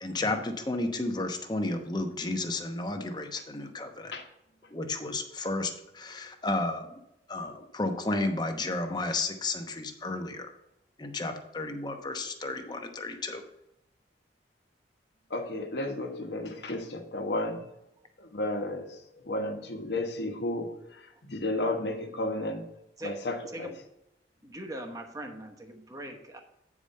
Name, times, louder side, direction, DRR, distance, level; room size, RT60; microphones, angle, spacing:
voice 1, 0.0-4.1 4.7-6.9 7.3-10.5 11.0-13.4, left 2 dB, 25° left, 5 dB, 0.9 m, -32 dB
voice 2, 15.3-17.6 18.2-22.6 23.0-23.7, left 1 dB, 70° left, 5 dB, 1.3 m, -33 dB
voice 3, 24.4-26.4, right 1 dB, 20° right, 3 dB, 1.1 m, -41 dB
9.0 x 5.0 x 5.4 m, 0.84 s
head